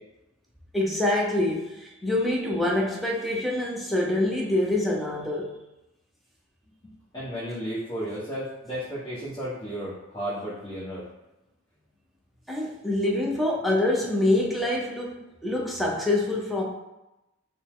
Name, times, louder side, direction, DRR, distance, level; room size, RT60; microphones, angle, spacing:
voice 1, 0.7-5.5 12.5-16.6, left 1 dB, ahead, -3 dB, 0.7 m, -25 dB
voice 2, 7.1-11.0, equal, 20° left, -12 dB, 1.2 m, -33 dB
5.3 x 2.2 x 3.7 m, 0.96 s
head